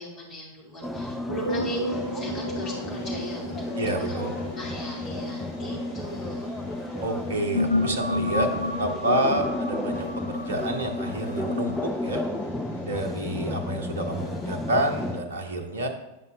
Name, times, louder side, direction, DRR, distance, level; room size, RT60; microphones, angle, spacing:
voice 1, 0.0-3.8 4.1-6.5, left 1 dB, 30° left, -4 dB, 2.4 m, -38 dB
sound 1, 0.8-15.2, left 2 dB, 5° left, 0.5 m, -32 dB
sound 2, 1.3-6.6 7.2-12.1, left 1 dB, 85° left, 0.4 m, -32 dB
Train, 2.0-15.2, equal, 60° left, 1.7 m, -47 dB
voice 2, 3.8-4.4 7.0-12.2 12.8-15.9, right 1 dB, 70° right, 5 dB, 0.8 m, -29 dB
9.0 x 5.3 x 2.6 m, 0.99 s
figure-of-eight pair, 90°, 0 cm